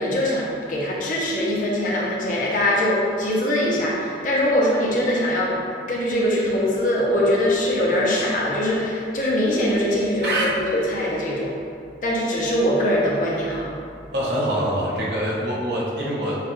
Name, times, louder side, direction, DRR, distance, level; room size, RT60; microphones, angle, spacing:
voice 1, 0.0-5.6 5.9-11.5 12.0-13.7, left 1 dB, 50° left, -5 dB, 0.7 m, -22 dB
voice 2, 14.1-16.4, right 1 dB, 65° right, -6 dB, 1.0 m, -24 dB
6.5 x 2.4 x 3.0 m, 2.4 s
head